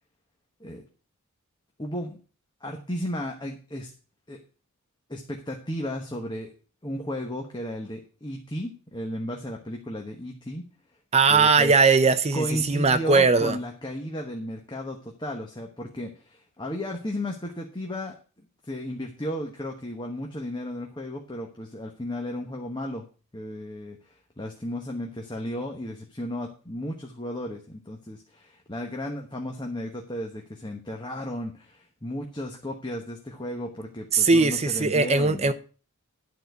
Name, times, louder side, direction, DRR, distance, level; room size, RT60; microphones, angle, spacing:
voice 1, 1.8-2.2 2.6-3.9 4.3-4.4 5.1-6.5 6.8-10.6 11.3-11.7 12.3-18.2 18.7-23.0 23.3-35.5, left 1 dB, 20° left, 1.2 m, -34 dB
voice 2, 11.1-13.6 34.1-35.5, right 4 dB, 30° right, 0.6 m, -20 dB
12.0 x 4.3 x 8.0 m
head